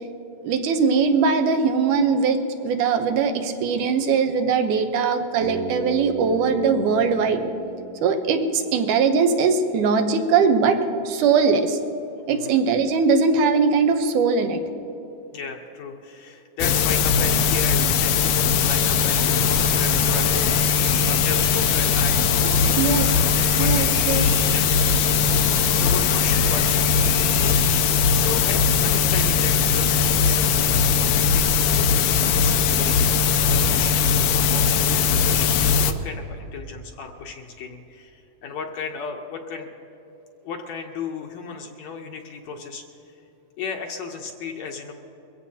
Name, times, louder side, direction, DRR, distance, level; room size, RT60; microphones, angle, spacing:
voice 1, 0.4-7.5 8.0-11.8 12.3-14.6 22.8-23.1 23.6-24.2, right 5 dB, 80° right, 6 dB, 2.4 m, -21 dB
Bass guitar, 5.4-9.4, right 3 dB, 50° right, 1.9 m, -37 dB
voice 2, 15.3-24.2 24.5-30.5 30.9-39.7 40.4-43.1 43.6-44.9, left 5 dB, 70° left, 2 dB, 1.9 m, -35 dB
sound 1, 16.6-35.9, left 6 dB, 85° left, 2.2 m, -20 dB
sound 2, 18.6-27.8, right 1 dB, 10° right, 1.1 m, -37 dB
23.0 x 15.5 x 2.8 m, 3.0 s
omnidirectional pair, 3.6 m